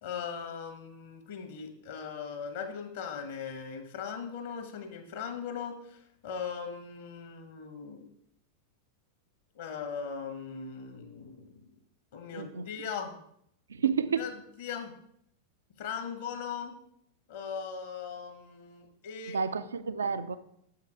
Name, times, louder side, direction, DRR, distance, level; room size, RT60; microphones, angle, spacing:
voice 1, 0.0-8.0 9.6-11.7 12.1-13.2 14.2-14.3 14.6-14.9 15.8-16.7 17.3-19.4, left 6 dB, 55° left, 1.2 m, -39 dB
voice 2, 12.3-12.7 13.7-14.3 19.3-20.4, right 6 dB, 70° right, 0.5 m, -30 dB
7.3 x 5.7 x 4.7 m
figure-of-eight pair, 90°, 0 cm